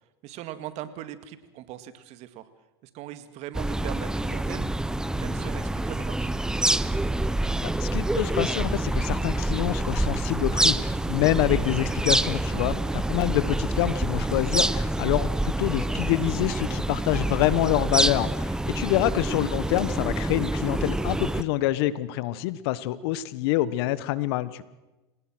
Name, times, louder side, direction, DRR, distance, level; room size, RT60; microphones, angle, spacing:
voice 1, 0.2-2.5 2.9-4.7 5.2-6.3 12.4-12.7 18.7-19.0, right 12 dB, 50° right, 12 dB, 2.1 m, -40 dB
sound 1, 3.5-21.4, right 1 dB, 5° right, 0.8 m, -27 dB
voice 2, 7.6-24.6, left 15 dB, 65° left, 18 dB, 1.2 m, -26 dB
28.0 x 18.5 x 6.3 m, 1.1 s
hypercardioid pair, 105°, 14 cm